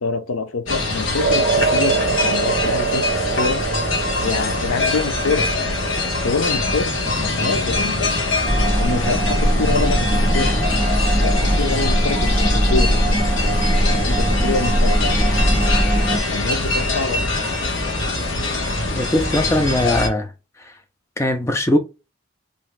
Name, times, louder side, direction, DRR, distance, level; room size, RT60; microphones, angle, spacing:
voice 1, 0.0-3.6 4.2-5.5 6.2-10.5 11.1-15.2 16.3-17.3, left 4 dB, 90° left, 0.6 m, -26 dB
sound 1, 0.7-20.1, left 2 dB, 65° left, 1.1 m, -23 dB
sound 2, 1.2-9.5, right 5 dB, 75° right, 0.3 m, -26 dB
sound 3, 8.4-16.2, equal, 10° right, 1.3 m, -19 dB
voice 2, 19.0-20.3 21.2-21.8, left 1 dB, 15° left, 0.4 m, -20 dB
2.9 x 2.6 x 3.2 m
head